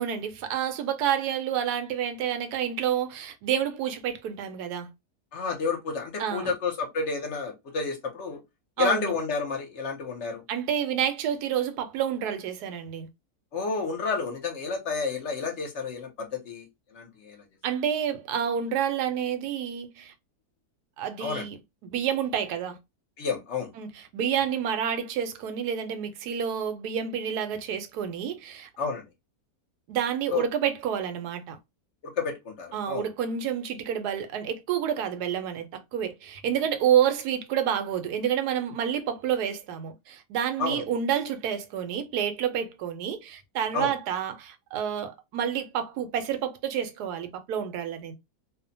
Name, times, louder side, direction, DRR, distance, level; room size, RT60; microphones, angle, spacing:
voice 1, 0.0-4.9 6.2-6.5 8.8-9.1 10.5-13.1 17.6-20.1 21.0-21.6 21.8-22.8 23.8-28.7 29.9-31.6 32.7-48.1, right 9 dB, 90° right, 1.1 m, -29 dB
voice 2, 5.3-8.4 8.8-10.4 13.5-17.4 21.2-21.5 23.2-23.7 28.8-29.1 30.3-30.4 32.2-33.1 40.6-40.8 43.7-43.9, left 4 dB, 55° left, 0.9 m, -30 dB
2.8 x 2.1 x 2.5 m
omnidirectional pair, 1.6 m